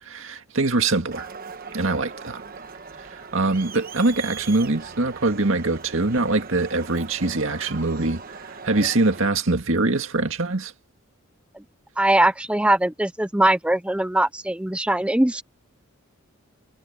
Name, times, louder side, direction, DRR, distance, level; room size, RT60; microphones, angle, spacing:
voice 1, 0.0-1.3 1.7-2.4 3.0-10.7, right 2 dB, 65° right, 2.1 m, -23 dB
Crowd, 1.1-9.3, right 5 dB, 45° right, 1.2 m, -40 dB
voice 2, 12.0-15.4, right 1 dB, 5° right, 0.4 m, -21 dB
head